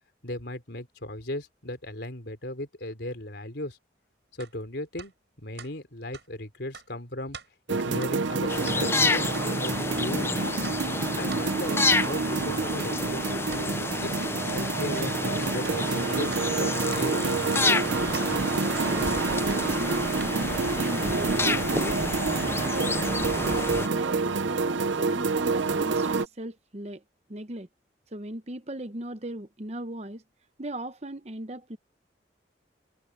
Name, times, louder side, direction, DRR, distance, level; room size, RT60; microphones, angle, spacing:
voice 1, 0.2-3.8 4.4-5.1 5.4-7.4 7.7-9.3 9.6-10.6 11.2-13.7 14.0-14.2 14.4-16.3 16.6-17.8, left 1 dB, 65° left, 3.8 m, -36 dB
sound 1, 4.4-4.5 5.0-5.1 5.6-5.7 6.1-6.3 6.7-6.9 7.3-7.5 8.0-8.2 8.6-8.8 9.3-9.5 9.9-10.1 10.6-10.8 11.3-11.5 12.0-12.2 12.8-12.9 13.5-13.7 14.2-14.4 14.9-15.1 15.6-15.8 16.3-17.1 17.5-18.3 18.8-18.9 19.5-19.6 20.2-20.3 20.9-21.0 21.5-21.6, right 6 dB, 70° right, 6.8 m, -44 dB
sound 2, 7.7-26.3, right 4 dB, 85° right, 0.8 m, -28 dB
sound 3, 8.5-23.9, left 3 dB, 15° left, 0.5 m, -30 dB
voice 2, 18.9-20.1 20.8-22.0 22.6-27.0 27.3-27.7 28.1-30.2 30.6-31.8, right 1 dB, 35° right, 0.9 m, -38 dB
head